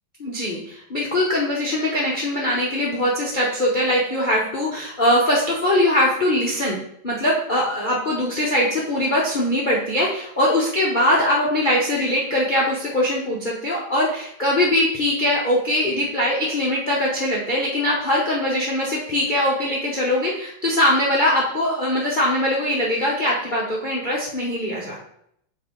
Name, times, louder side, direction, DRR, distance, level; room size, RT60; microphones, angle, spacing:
voice 1, 0.2-6.8 7.0-25.0, left 1 dB, 40° left, -5 dB, 0.7 m, -21 dB
5.8 x 4.3 x 3.8 m, 0.71 s
omnidirectional pair, 2.3 m